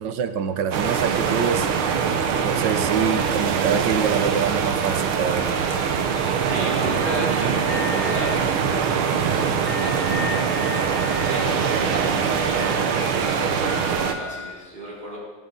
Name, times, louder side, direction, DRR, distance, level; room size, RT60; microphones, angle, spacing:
voice 1, 0.0-1.7 2.4-5.6, right 7 dB, 65° right, 9 dB, 1.4 m, -25 dB
sound 1, 0.7-14.1, right 6 dB, 85° right, 1.9 m, -23 dB
sound 2, 1.0-14.5, left 6 dB, 55° left, 1.8 m, -38 dB
voice 2, 6.4-10.5 11.2-15.2, right 1 dB, 25° right, -5 dB, 4.3 m, -34 dB
18.0 x 12.5 x 4.0 m, 1.4 s
omnidirectional pair, 2.2 m